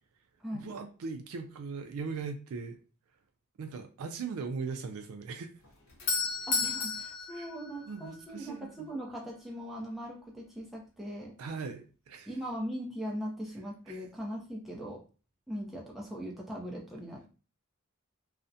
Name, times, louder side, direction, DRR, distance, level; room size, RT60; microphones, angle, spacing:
voice 1, 0.5-2.8 3.6-5.5 7.3-7.5 7.9-8.9 11.4-12.3 13.9-14.1, right 4 dB, 75° right, 0.3 m, -39 dB
Doorbell, 5.6-8.5, left 4 dB, 75° left, 0.6 m, -33 dB
voice 2, 6.5-11.3 12.3-15.0 15.5-17.3, equal, ahead, 0.5 m, -40 dB
2.4 x 2.1 x 2.6 m
head